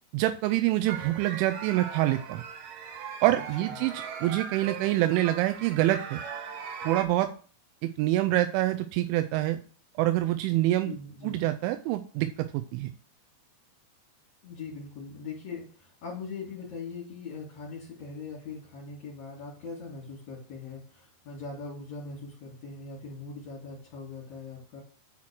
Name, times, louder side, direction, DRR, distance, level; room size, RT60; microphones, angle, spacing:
voice 1, 0.1-2.4 3.2-3.9 4.2-6.2 6.8-7.3 7.8-9.6 10.0-10.9 11.2-12.9, right 15 dB, 90° right, 8 dB, 3.0 m, -26 dB
sound 1, 0.9-7.0, right 7 dB, 70° right, 2.2 m, -39 dB
voice 2, 10.8-11.4 14.4-24.8, left 4 dB, 45° left, -4 dB, 3.0 m, -41 dB
9.8 x 4.5 x 6.2 m, 0.41 s
omnidirectional pair, 5.3 m